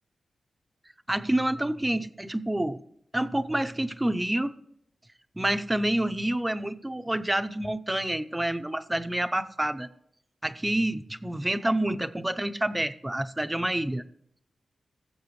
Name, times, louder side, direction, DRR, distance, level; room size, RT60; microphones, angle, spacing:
voice 1, 1.1-2.8 3.1-4.5 5.4-9.9 10.4-14.0, right 1 dB, 10° right, 10 dB, 0.6 m, -28 dB
18.5 x 7.6 x 3.2 m, 0.72 s
wide cardioid pair, 135°, 0 cm